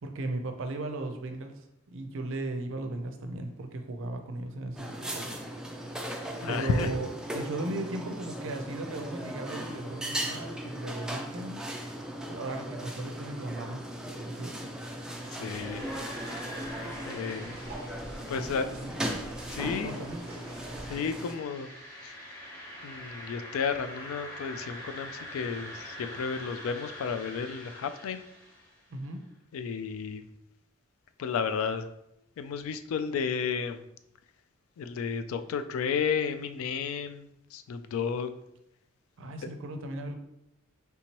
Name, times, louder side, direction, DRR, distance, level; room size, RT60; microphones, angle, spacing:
voice 1, 0.0-1.6 1.9-5.2 6.5-7.1 7.3-11.6 12.3-15.0 18.6-19.0 19.6-20.2 28.9-29.2 39.2-40.2, right 2 dB, 65° right, 5 dB, 0.5 m, -37 dB
sound 1, 4.7-21.3, right 1 dB, 5° right, 0.4 m, -38 dB
voice 2, 6.4-6.9 15.4-15.8 17.1-17.6 18.3-18.7 19.5-20.0 20.9-21.7 22.0-22.1 22.8-28.2 29.5-30.2 31.2-31.9 32.4-33.8 34.8-38.3, left 6 dB, 85° left, 10 dB, 0.3 m, -32 dB
sound 2, 14.9-28.9, equal, 20° left, 1.2 m, -45 dB
sound 3, 15.5-20.9, right 1 dB, 30° right, 1.0 m, -47 dB
3.4 x 2.9 x 2.9 m, 0.81 s
head